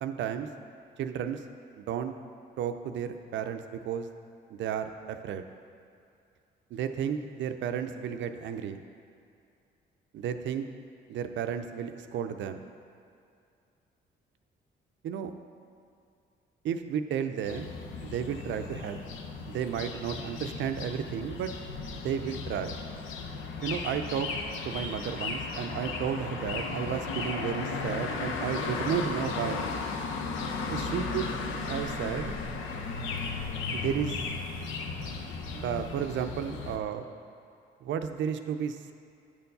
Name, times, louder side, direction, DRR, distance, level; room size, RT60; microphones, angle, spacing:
voice 1, 0.0-0.5 1.0-1.4 1.8-2.1 2.6-4.1 4.5-5.5 6.7-8.8 10.1-10.7 11.1-12.6 15.0-15.3 16.6-17.7 18.0-19.0 19.5-21.5 21.9-22.8 23.6-24.3 24.6-29.7 30.7-31.3 31.6-32.3 33.7-34.2 35.5-37.1 37.8-38.9, right 8 dB, 70° right, 8 dB, 0.5 m, -33 dB
sound 1, 17.4-36.8, left 4 dB, 90° left, 0.6 m, -35 dB
8.7 x 4.5 x 5.3 m, 2.4 s
cardioid pair, 90°, 20 cm